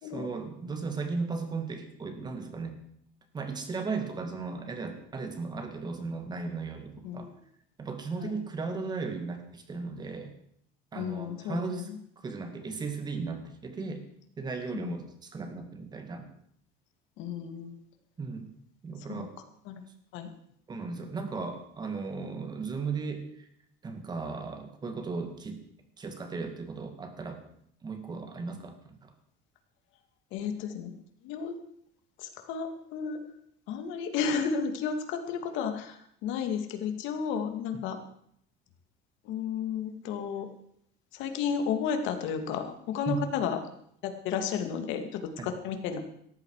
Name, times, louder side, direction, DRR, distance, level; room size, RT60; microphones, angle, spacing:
voice 1, 0.0-2.8 3.3-7.3 7.8-10.3 10.9-11.9 12.2-14.0 14.4-16.3 18.2-18.5 18.8-19.3 20.7-23.5 23.8-25.6 26.0-27.5 27.8-29.1 43.1-43.2 45.4-45.5, right 4 dB, 20° right, 7 dB, 2.1 m, -36 dB
voice 2, 10.9-12.0 14.7-14.9 17.2-17.7 19.0-19.2 19.7-19.8 20.1-20.3 30.3-30.9 31.2-31.6 32.2-33.2 33.7-38.0 39.2-40.5 41.1-43.6 44.0-46.0, left 6 dB, 65° left, 6 dB, 2.4 m, -33 dB
17.5 x 14.0 x 4.9 m, 0.69 s
cardioid pair, 165°, 21 cm